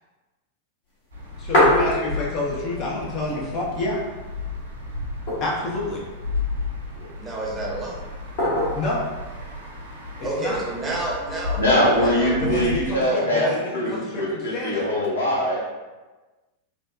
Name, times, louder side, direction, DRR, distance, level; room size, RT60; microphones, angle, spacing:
sound 1, 1.0-2.5 2.9-3.0 3.2-4.0 4.4-4.5 5.0-5.8 6.5-7.2 8.4-9.0 10.1-10.6, left 1 dB, 50° left, 1.1 m, -23 dB
sound 2, 1.1-12.9, left 3 dB, 70° right, 0.5 m, -33 dB
voice 1, 1.4-4.0 5.4-6.0 8.7-9.1 10.2-10.6 12.4-14.9, left 2 dB, 35° left, -4 dB, 0.6 m, -28 dB
voice 2, 7.2-8.0 10.2-12.3, right 2 dB, 20° right, -5 dB, 0.8 m, -29 dB
voice 3, 11.6-15.6, equal, 70° left, -6 dB, 0.8 m, -22 dB
3.2 x 2.0 x 2.5 m, 1.2 s
figure-of-eight pair, 90°, 0 cm